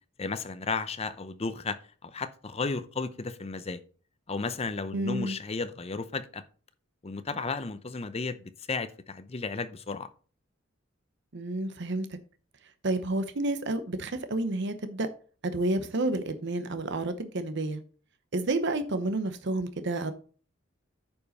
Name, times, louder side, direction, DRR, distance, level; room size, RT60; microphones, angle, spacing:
voice 1, 0.2-3.8 4.3-6.4 7.0-10.1, left 4 dB, 30° left, 0.6 m, -34 dB
voice 2, 4.9-5.4 11.3-12.1 12.8-15.1 15.4-17.8 18.3-20.1, right 2 dB, 65° right, 0.8 m, -30 dB
9.3 x 5.3 x 4.1 m
head